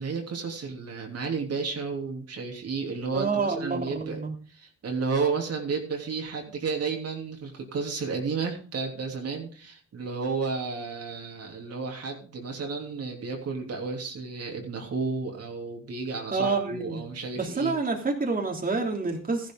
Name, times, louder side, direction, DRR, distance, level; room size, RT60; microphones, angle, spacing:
voice 1, 0.0-4.2 4.5-17.7, right 4 dB, 55° right, 1 dB, 3.2 m, -32 dB
voice 2, 3.1-4.3 16.3-17.0 17.3-19.5, right 4 dB, 30° right, 1 dB, 3.0 m, -28 dB
14.5 x 11.0 x 3.9 m, 0.40 s
cardioid pair, 90°, 30 cm